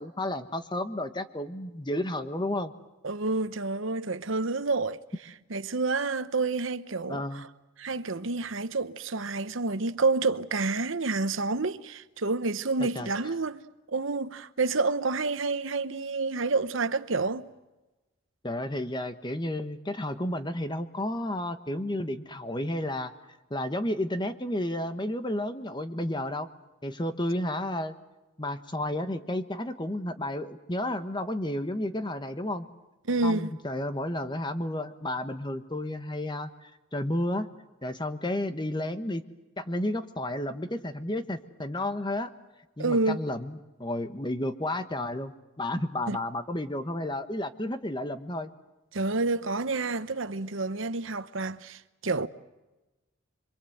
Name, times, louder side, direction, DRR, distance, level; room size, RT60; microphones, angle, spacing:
voice 1, 0.0-2.7 7.1-7.5 12.8-13.1 18.4-23.1 23.5-26.5 26.8-27.9 28.4-32.7 33.2-37.5 37.8-39.2 39.6-42.3 42.8-48.5, left 1 dB, 20° left, 1.2 m, -32 dB
voice 2, 3.0-5.0 5.5-7.4 7.8-13.6 13.9-17.5 33.1-33.5 42.8-43.2 46.1-46.2 48.9-52.3, right 3 dB, 70° right, 1.0 m, -29 dB
27.0 x 24.0 x 7.9 m
head